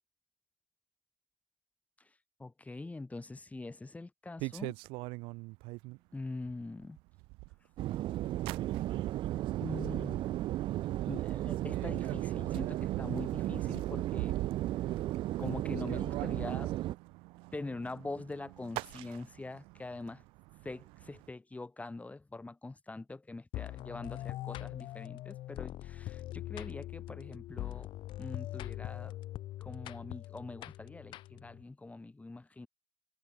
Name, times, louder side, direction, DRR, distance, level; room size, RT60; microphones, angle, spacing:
voice 1, 2.4-4.7 6.1-7.0 9.6-10.2 11.1-14.4 15.4-16.8 17.5-20.2 20.6-27.9 28.2-29.2 29.6-32.7, left 2 dB, 15° left, 6.9 m, -43 dB
sound 1, 4.4-6.0 6.4-7.8 8.1-9.1 9.5-9.9 10.4-10.5 10.7-21.3, right 24 dB, 85° right, 1.4 m, -45 dB
sound 2, 7.8-17.0, right 15 dB, 70° right, 1.3 m, -34 dB
sound 3, 23.5-31.6, left 15 dB, 70° left, 0.7 m, -42 dB
supercardioid pair, 90°, 9 cm